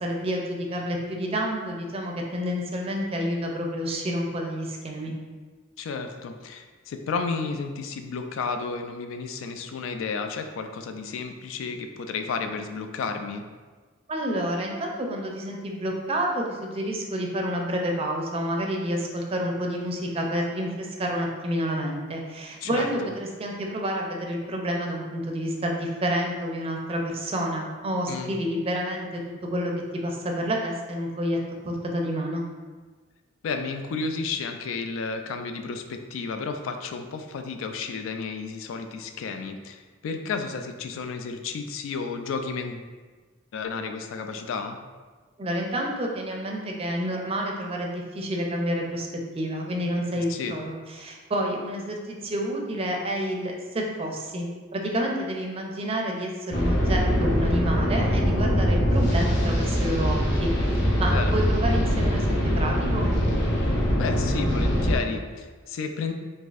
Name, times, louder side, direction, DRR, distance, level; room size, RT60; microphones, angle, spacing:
voice 1, 0.0-5.1 14.1-29.2 29.5-29.7 30.0-31.4 31.6-32.4 45.4-49.1 49.3-63.1, equal, 30° right, 0 dB, 0.4 m, -29 dB
voice 2, 5.8-13.4 22.6-23.1 28.1-28.3 33.4-42.9 43.5-44.8 50.1-50.6 61.1-61.4 64.0-66.1, left 4 dB, 75° left, 6 dB, 0.3 m, -32 dB
sound 1, 56.5-65.0, equal, 60° left, 0.7 m, -23 dB
3.9 x 2.6 x 2.4 m, 1.4 s
head